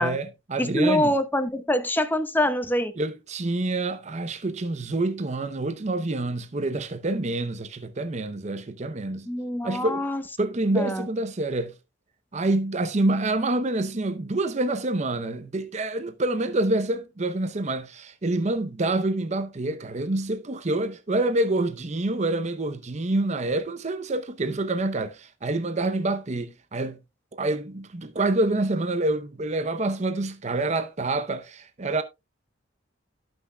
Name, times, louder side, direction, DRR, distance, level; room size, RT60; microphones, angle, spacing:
voice 1, 0.0-1.1 3.0-9.3 9.6-10.0 10.4-11.7 12.3-27.0 27.3-32.0, right 2 dB, 35° right, 0.7 m, -27 dB
voice 2, 0.6-2.9 9.3-10.2 10.7-11.0, left 1 dB, 10° left, 0.9 m, -25 dB
17.0 x 6.1 x 2.2 m
head